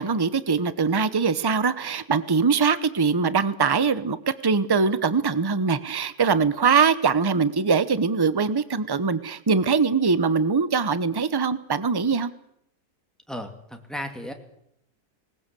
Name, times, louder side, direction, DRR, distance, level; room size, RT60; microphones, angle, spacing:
voice 1, 0.0-12.3, right 5 dB, 20° right, 14 dB, 0.7 m, -22 dB
voice 2, 13.3-14.3, equal, ahead, 4 dB, 2.3 m, -34 dB
20.0 x 19.5 x 8.4 m, 0.74 s
omnidirectional pair, 1.6 m